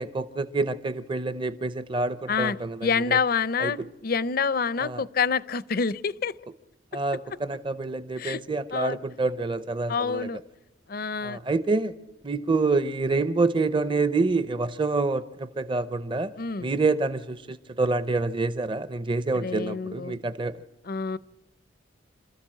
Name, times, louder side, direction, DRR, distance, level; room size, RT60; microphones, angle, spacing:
voice 1, 0.0-3.2 3.6-3.7 4.8-5.0 6.9-10.3 11.2-11.9 12.2-16.3 16.6-20.5, right 3 dB, 25° right, 0.6 m, -27 dB
voice 2, 2.3-6.4 8.2-8.4 8.7-9.0 9.9-10.4 10.9-11.4 16.4-16.7 19.3-20.2 20.8-21.2, left 5 dB, 50° left, 0.6 m, -27 dB
27.5 x 13.5 x 7.6 m
head